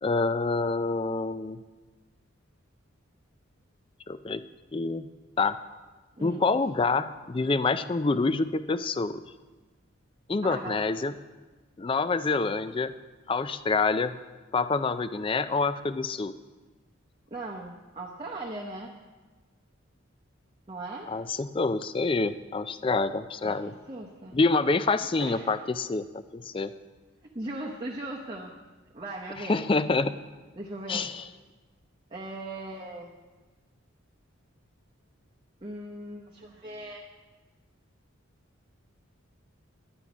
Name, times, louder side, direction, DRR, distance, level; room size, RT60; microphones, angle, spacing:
voice 1, 0.0-1.6 4.1-4.4 4.7-5.1 5.4-5.6 6.2-9.2 10.3-11.1 11.8-12.9 13.3-14.2 14.5-16.3 21.1-23.7 24.3-26.7 29.5-30.1 30.9-31.2, left 3 dB, 25° left, 13 dB, 0.3 m, -27 dB
voice 2, 10.4-10.8 17.3-18.9 20.7-21.1 23.4-23.6 23.9-24.4 25.1-25.6 27.3-28.5 28.9-29.7 30.6-31.1 32.1-33.1 35.6-37.1, right 2 dB, 25° right, -2 dB, 0.8 m, -38 dB
10.5 x 10.5 x 5.0 m, 1.3 s
head